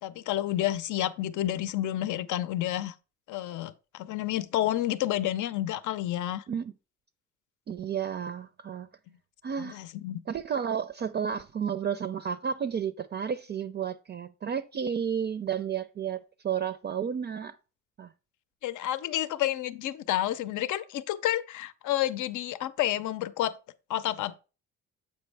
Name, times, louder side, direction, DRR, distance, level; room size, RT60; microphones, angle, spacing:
voice 1, 0.0-2.9 3.3-6.4 9.6-10.2 18.6-23.6 23.9-24.4, left 13 dB, 80° left, 0.6 m, -30 dB
voice 2, 7.7-8.9 9.4-9.8 10.3-17.5 18.0-18.1, right 7 dB, 35° right, 0.4 m, -32 dB
7.6 x 5.3 x 3.3 m
cardioid pair, 90°, 30 cm